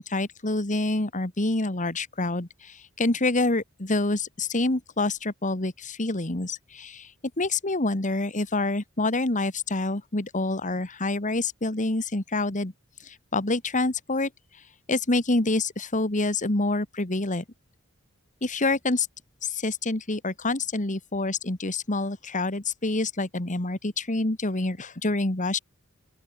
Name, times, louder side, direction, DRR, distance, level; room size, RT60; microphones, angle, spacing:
voice 1, 0.0-7.1 7.4-12.7 13.0-14.3 14.9-17.4 18.4-19.1 19.4-25.6, left 2 dB, 35° left, 2.0 m, -27 dB
open air
head